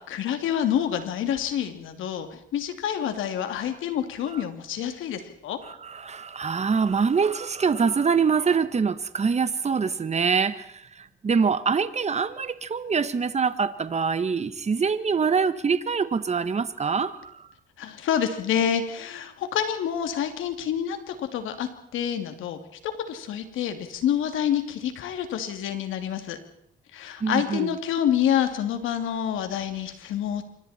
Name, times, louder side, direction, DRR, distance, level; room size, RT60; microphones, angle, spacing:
voice 1, 0.1-5.6 17.8-22.6 22.8-26.4 26.9-30.4, left 9 dB, 85° left, 2.9 m, -27 dB
voice 2, 5.6-17.5 27.2-27.7, right 5 dB, 35° right, 1.5 m, -25 dB
26.5 x 24.5 x 4.5 m
cardioid pair, 90°, 20 cm